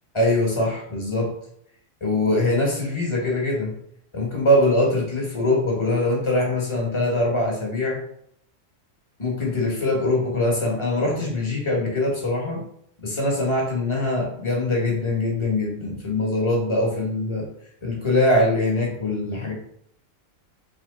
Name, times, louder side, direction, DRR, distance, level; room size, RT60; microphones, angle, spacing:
voice 1, 0.1-1.3 2.0-3.7 4.1-8.0 9.2-12.6 13.0-17.5 17.8-19.5, left 1 dB, 25° left, -2 dB, 1.1 m, -23 dB
3.9 x 3.0 x 3.7 m, 0.69 s
omnidirectional pair, 1.4 m